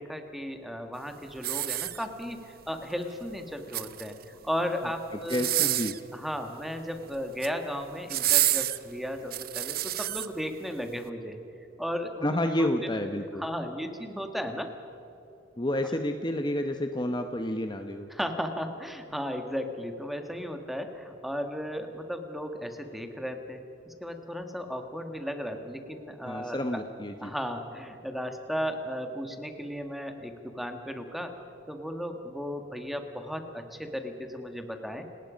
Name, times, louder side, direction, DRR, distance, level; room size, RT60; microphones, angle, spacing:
voice 1, 0.0-5.7 6.1-11.4 11.8-12.4 13.3-14.7 18.1-26.6 27.2-31.3 31.7-35.0, equal, ahead, 5 dB, 1.7 m, -35 dB
sound 1, 1.4-2.4 3.5-4.3 5.2-6.1 7.1-7.6 8.1-10.3 10.9-11.0, right 14 dB, 50° right, 0.7 m, -28 dB
voice 2, 5.3-5.9 12.2-13.4 15.6-18.1 26.2-27.3, left 1 dB, 25° left, 6 dB, 0.9 m, -29 dB
30.0 x 19.0 x 5.2 m, 2.9 s
head